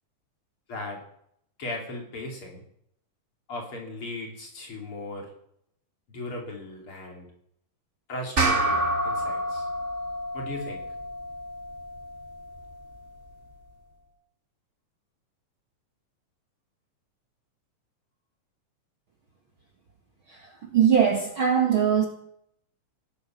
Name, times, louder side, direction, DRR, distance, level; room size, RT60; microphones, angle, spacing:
voice 1, 0.7-1.0 1.6-2.6 3.5-5.3 6.1-7.3 8.1-9.7 10.3-10.9, left 2 dB, 40° left, 0 dB, 3.6 m, -37 dB
sound 1, 8.4-13.1, right 1 dB, 20° right, 2.7 m, -29 dB
voice 2, 20.3-22.0, right 8 dB, 45° right, 2 dB, 2.0 m, -22 dB
17.5 x 9.5 x 7.4 m, 0.71 s
omnidirectional pair, 3.8 m